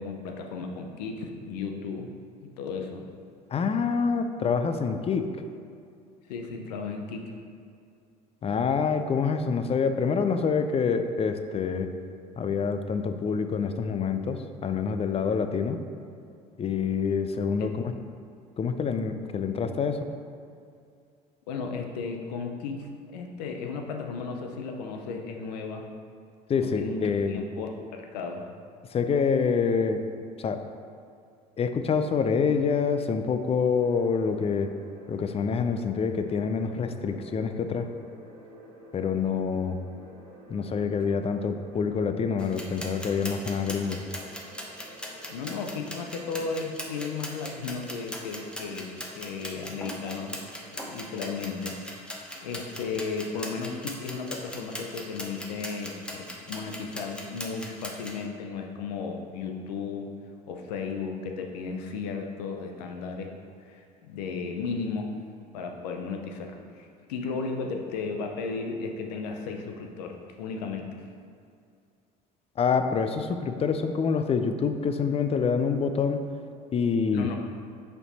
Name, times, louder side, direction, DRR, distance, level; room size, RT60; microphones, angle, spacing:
voice 1, 0.0-2.1 2.4-3.0 6.3-7.3 17.6-17.7 21.5-25.9 26.6-28.5 45.3-50.4 50.7-55.9 56.5-60.1 60.5-63.3 63.7-65.1 65.5-70.9 77.1-77.4, left 4 dB, 80° left, 3 dB, 0.7 m, -35 dB
voice 2, 3.5-5.3 8.4-11.9 12.4-15.8 16.6-17.9 18.6-20.1 26.5-27.4 28.9-30.0 30.4-30.6 31.6-34.7 35.1-37.9 38.9-39.8 40.5-44.0 72.6-76.2 76.7-77.4, left 5 dB, 30° left, 8 dB, 0.5 m, -26 dB
sound 1, 33.7-51.9, equal, 80° right, 1.2 m, -50 dB
sound 2, 42.4-58.2, equal, 5° left, 0.9 m, -40 dB
5.3 x 4.5 x 4.2 m, 2.4 s
hypercardioid pair, 70°, 21 cm